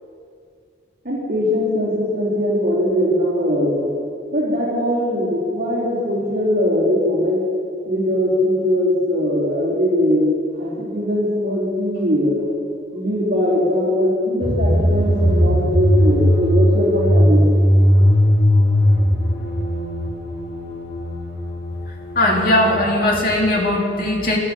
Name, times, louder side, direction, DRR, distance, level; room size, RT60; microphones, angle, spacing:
voice 1, 1.0-3.9 4.3-7.4 7.9-10.2 10.6-12.4 12.9-17.4, left 1 dB, 50° right, -7 dB, 4.2 m, -20 dB
sound 1, 14.4-23.2, equal, 75° left, 4.8 m, -18 dB
voice 2, 22.1-24.4, left 1 dB, 50° left, -2 dB, 2.8 m, -18 dB
14.0 x 12.0 x 7.3 m, 2.4 s
head